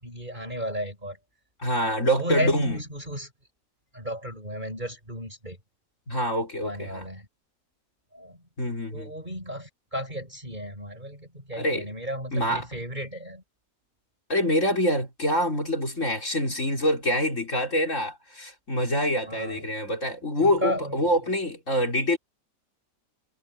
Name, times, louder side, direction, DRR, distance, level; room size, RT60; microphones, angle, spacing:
voice 1, 0.0-1.2 1.8-3.3 3.9-5.6 6.6-7.3 8.1-8.4 8.9-13.4 19.3-19.6 20.4-21.1, equal, 30° right, 7.3 m, -34 dB
voice 2, 1.6-2.8 6.1-7.0 8.6-9.1 11.6-11.9 12.3-12.7 14.3-22.2, equal, 55° left, 5.1 m, -25 dB
omnidirectional pair, 1.5 m